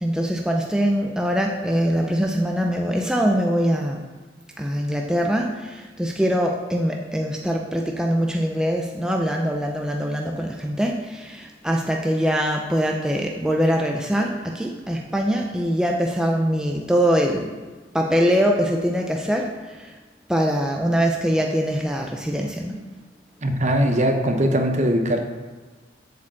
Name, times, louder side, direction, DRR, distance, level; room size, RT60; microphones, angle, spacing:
voice 1, 0.0-4.0 4.6-17.6 17.9-19.5 19.8-19.9 20.3-22.8, equal, 5° right, 1 dB, 0.5 m, -23 dB
voice 2, 23.4-25.2, equal, 40° right, 5 dB, 1.0 m, -20 dB
8.1 x 5.0 x 7.3 m, 1.3 s
head